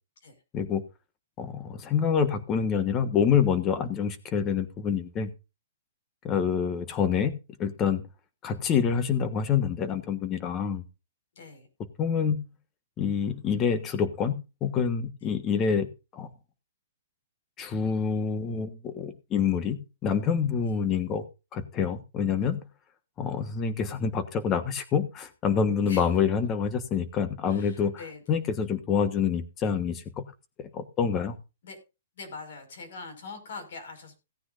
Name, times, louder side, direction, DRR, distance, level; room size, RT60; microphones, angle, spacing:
voice 1, 1.4-5.3 6.2-7.3 7.6-8.0 8.4-10.8 12.0-12.4 13.0-15.9 16.1-16.3 17.6-21.2 21.5-22.6 23.2-27.9 28.3-30.0 30.6-31.3, left 7 dB, 20° left, 1.4 m, -27 dB
voice 2, 11.4-11.7 15.2-15.3 20.7-20.8 25.8-26.1 27.5-28.2 31.6-31.8 32.2-34.2, left 4 dB, 65° left, 5.4 m, -43 dB
17.0 x 9.6 x 2.6 m
hypercardioid pair, 160°, 0 cm